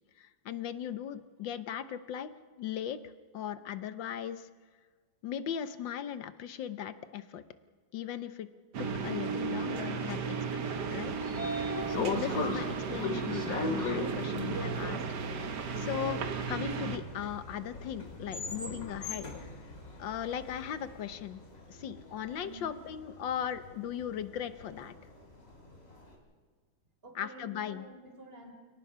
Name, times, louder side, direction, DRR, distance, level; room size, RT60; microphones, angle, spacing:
voice 1, 0.2-2.3 2.6-3.0 3.3-4.5 5.2-7.4 7.9-8.5 8.8-11.6 11.9-15.1 15.5-19.5 20.0-21.4 21.7-25.0 27.2-27.9, left 9 dB, 75° left, 12 dB, 1.7 m, -38 dB
sound 1, 8.7-17.0, right 5 dB, 60° right, 1.8 m, -35 dB
sound 2, 9.0-26.2, left 1 dB, 30° left, 3.7 m, -52 dB
Train / Sliding door, 10.8-20.9, left 3 dB, 45° left, 2.6 m, -38 dB
voice 2, 22.3-22.8 27.0-28.5, right 1 dB, 30° right, 4 dB, 3.9 m, -49 dB
29.5 x 18.0 x 5.7 m, 1.5 s
omnidirectional pair, 2.1 m